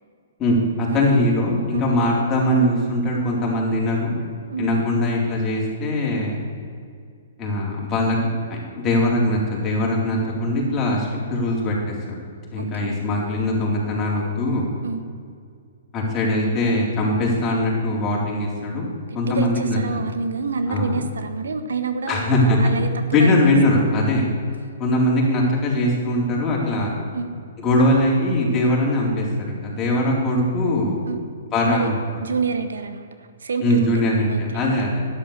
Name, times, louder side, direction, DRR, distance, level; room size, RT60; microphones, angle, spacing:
voice 1, 0.4-4.2 4.6-6.4 7.4-8.2 8.5-12.2 12.5-14.7 15.9-18.8 19.1-20.0 20.7-21.0 22.1-22.6 23.1-24.2 24.8-27.0 27.6-31.0 31.5-32.2 33.6-35.0, left 1 dB, 20° left, -3 dB, 4.0 m, -21 dB
voice 2, 12.6-13.0 14.8-15.0 19.1-22.3 22.6-23.6 24.2-24.3 27.1-27.3 31.1-31.2 31.6-31.9 32.2-33.1 33.4-33.9 34.3-34.7, right 4 dB, 70° right, 9 dB, 1.1 m, -28 dB
12.0 x 10.5 x 6.7 m, 2.3 s
figure-of-eight pair, 120°, 0 cm